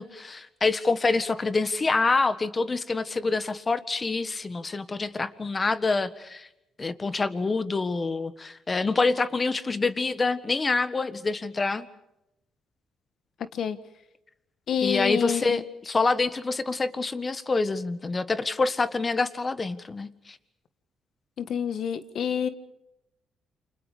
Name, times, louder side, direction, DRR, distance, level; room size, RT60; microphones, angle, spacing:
voice 1, 0.0-6.5 6.8-11.9 14.8-20.4, left 3 dB, 30° left, 13 dB, 1.6 m, -26 dB
voice 2, 14.7-15.6 21.4-22.5, left 8 dB, 65° left, 12 dB, 1.5 m, -27 dB
29.0 x 26.5 x 5.1 m, 0.88 s
cardioid pair, 90°, 0 cm